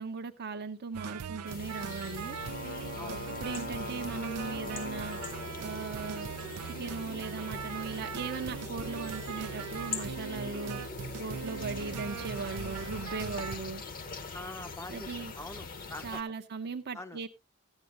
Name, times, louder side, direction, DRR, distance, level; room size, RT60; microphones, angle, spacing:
voice 1, 0.0-2.4 3.1-5.2 5.6-6.3 6.6-10.8 11.2-13.8 14.9-15.3 16.0-17.3, right 4 dB, 45° right, 0.7 m, -38 dB
sound 1, 0.9-13.6, right 7 dB, 85° right, 0.5 m, -40 dB
sound 2, 1.5-16.2, left 4 dB, 40° left, 0.9 m, -43 dB
sound 3, 1.8-5.7, left 3 dB, 65° left, 1.3 m, -43 dB
voice 2, 14.3-15.1 15.4-16.2 16.9-17.2, left 1 dB, 10° left, 0.6 m, -44 dB
14.0 x 9.1 x 2.5 m
head